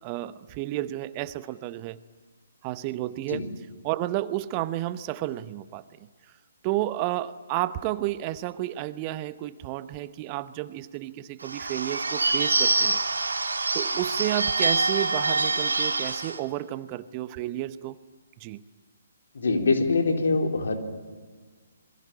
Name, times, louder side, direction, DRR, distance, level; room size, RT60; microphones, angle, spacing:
voice 1, 0.0-2.0 2.6-3.5 3.8-5.8 6.6-13.5 13.7-18.0 18.4-18.6, right 15 dB, 30° right, 15 dB, 0.8 m, -31 dB
Bird / Bell, 11.4-16.4, right 3 dB, 75° right, 2.7 m, -25 dB
voice 2, 19.3-20.7, left 3 dB, 65° left, 3 dB, 3.8 m, -23 dB
27.0 x 21.5 x 8.7 m, 1.5 s
figure-of-eight pair, 130°, 0 cm